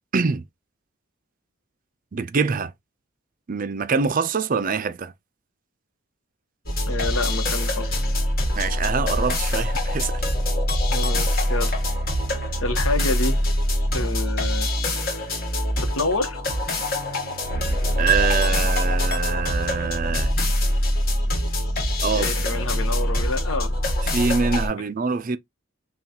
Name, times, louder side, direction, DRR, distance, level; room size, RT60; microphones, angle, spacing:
voice 1, 0.1-0.4 2.1-2.7 3.5-5.1 8.6-10.2 18.0-20.3 22.0-22.6 24.1-25.4, right 5 dB, 40° right, 0.5 m, -24 dB
sound 1, 6.7-24.7, left 1 dB, 45° left, 1.7 m, -24 dB
voice 2, 6.9-8.2 10.9-11.8 12.6-13.4 13.9-14.7 15.8-16.4 22.1-23.8, left 2 dB, 80° left, 1.0 m, -28 dB
5.6 x 2.3 x 2.8 m
head